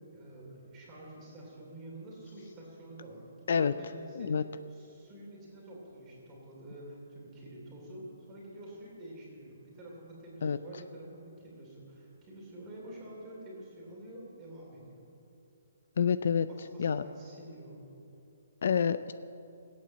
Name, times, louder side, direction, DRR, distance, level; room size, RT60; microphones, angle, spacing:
voice 1, 0.1-4.3 4.7-15.0 16.5-17.8, right 1 dB, 10° right, -4 dB, 3.0 m, -48 dB
voice 2, 16.0-16.5 16.8-17.0 18.6-19.1, left 7 dB, 50° left, 13 dB, 0.4 m, -27 dB
17.0 x 8.6 x 7.5 m, 2.7 s
hypercardioid pair, 175°, 0 cm